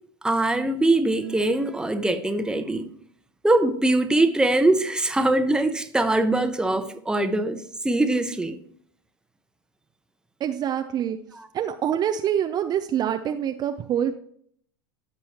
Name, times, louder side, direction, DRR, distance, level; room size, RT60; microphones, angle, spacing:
voice 1, 0.2-2.9 3.4-8.6 11.3-11.5, right 2 dB, 5° right, 8 dB, 0.9 m, -22 dB
voice 2, 10.4-11.2 11.5-14.2, right 9 dB, 35° right, 7 dB, 0.5 m, -25 dB
15.0 x 5.5 x 2.9 m, 0.63 s
hypercardioid pair, 85°, 12 cm